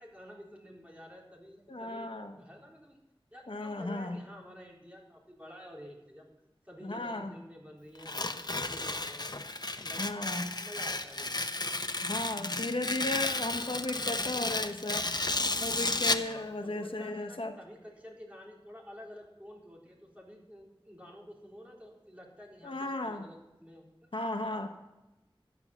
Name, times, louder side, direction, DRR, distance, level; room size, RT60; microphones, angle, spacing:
voice 1, 0.0-3.0 3.3-6.3 6.6-9.3 9.8-10.1 10.4-11.3 16.2-23.9, equal, 15° right, -3 dB, 4.0 m, -50 dB
voice 2, 1.7-2.3 3.5-4.2 6.8-7.3 10.0-10.4 12.0-15.1 15.6-17.6 22.6-23.3 24.1-24.7, left 2 dB, 65° left, 5 dB, 1.2 m, -35 dB
Tearing, 8.0-16.3, left 2 dB, 45° left, 0.8 m, -33 dB
12.0 x 9.8 x 7.2 m, 1.0 s
wide cardioid pair, 50°, 9 cm